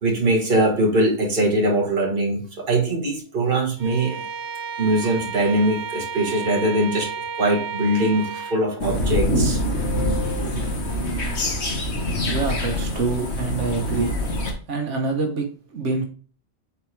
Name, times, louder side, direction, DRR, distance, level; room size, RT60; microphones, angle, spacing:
voice 1, 0.0-4.3 4.8-9.6, right 1 dB, 50° right, 1 dB, 1.7 m, -22 dB
Bowed string instrument, 3.8-8.7, right 6 dB, 65° right, 1.1 m, -32 dB
sound 1, 8.8-14.5, left 1 dB, 65° left, 1.6 m, -24 dB
voice 2, 12.3-14.1 14.7-16.0, right 4 dB, 85° right, 2 dB, 1.4 m, -26 dB
8.0 x 4.3 x 3.3 m, 0.41 s
omnidirectional pair, 1.2 m